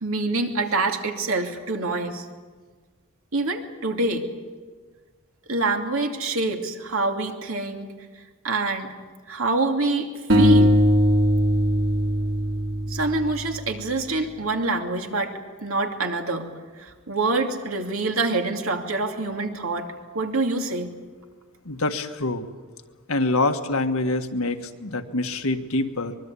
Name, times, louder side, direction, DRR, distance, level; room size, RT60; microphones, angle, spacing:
voice 1, 0.0-2.3 3.3-4.2 5.5-7.9 8.4-8.9 9.3-10.8 12.9-16.5 16.8-20.9, right 3 dB, 75° right, 3 dB, 2.7 m, -26 dB
sound 1, 10.3-13.5, equal, 60° right, 4.2 m, -19 dB
voice 2, 21.6-22.5 23.1-26.2, left 2 dB, 80° left, 6 dB, 1.6 m, -25 dB
24.0 x 22.5 x 8.5 m, 1.4 s
head